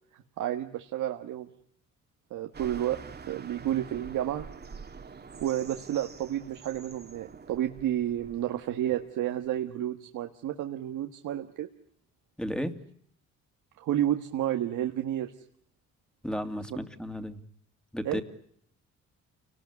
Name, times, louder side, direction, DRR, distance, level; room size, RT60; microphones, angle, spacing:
voice 1, 0.1-1.5 2.3-3.0 3.3-4.5 5.4-11.7 13.8-15.3 18.0-18.2, right 12 dB, 85° right, 5 dB, 1.7 m, -31 dB
sound 1, 2.5-9.6, right 5 dB, 35° right, 2.0 m, -47 dB
voice 2, 12.4-12.8 16.2-17.4 17.9-18.2, equal, 5° left, 8 dB, 2.6 m, -33 dB
29.5 x 19.5 x 9.6 m, 0.71 s
cardioid pair, 90°, 30 cm